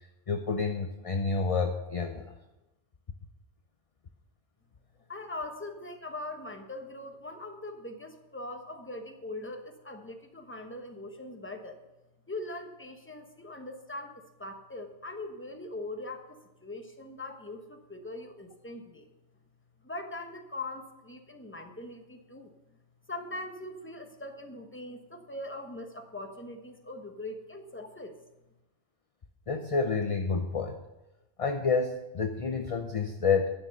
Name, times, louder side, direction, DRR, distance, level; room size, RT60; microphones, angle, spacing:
voice 1, 0.3-2.3 29.5-30.8 31.4-33.5, left 4 dB, 35° left, 6 dB, 0.6 m, -29 dB
voice 2, 5.1-11.8 12.3-16.2 16.6-19.1 19.8-22.5 23.1-28.2, left 2 dB, 10° left, 4 dB, 1.0 m, -41 dB
11.5 x 6.8 x 6.5 m, 1.0 s
omnidirectional pair, 1.2 m